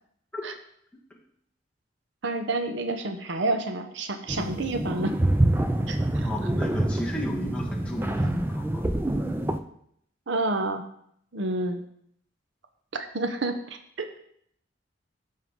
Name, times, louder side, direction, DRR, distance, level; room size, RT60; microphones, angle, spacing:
voice 1, 2.2-5.1 5.9-6.3 10.3-10.8 11.3-11.8 12.9-14.2, right 2 dB, 70° right, 7 dB, 0.8 m, -29 dB
sound 1, 4.3-9.6, right 1 dB, 10° right, 0.4 m, -26 dB
voice 2, 6.2-8.8, equal, 5° left, -3 dB, 1.5 m, -33 dB
12.0 x 5.5 x 3.7 m, 0.69 s
head